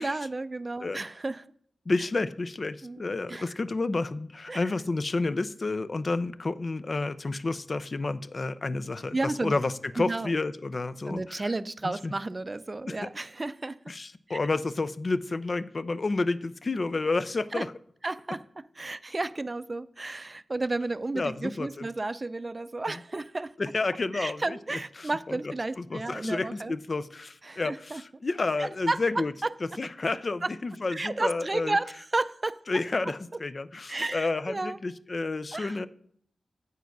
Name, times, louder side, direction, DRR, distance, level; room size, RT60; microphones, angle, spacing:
voice 1, 0.0-1.4 2.8-3.0 3.3-3.5 4.5-4.7 9.1-9.6 10.0-10.3 11.1-13.8 14.3-14.4 17.5-17.6 18.0-18.4 18.8-23.5 24.1-26.7 27.4-28.0 28.6-29.0 30.4-30.5 30.9-32.6 33.9-34.8 35.5-35.8, right 2 dB, 40° right, 15 dB, 0.4 m, -32 dB
voice 2, 1.9-11.5 11.8-12.1 12.9-13.1 13.9-17.7 21.1-21.9 22.9-23.0 23.6-29.3 29.8-31.8 32.7-35.9, left 3 dB, 50° left, 13 dB, 0.5 m, -30 dB
8.0 x 4.7 x 6.0 m, 0.64 s
cardioid pair, 40°, 0 cm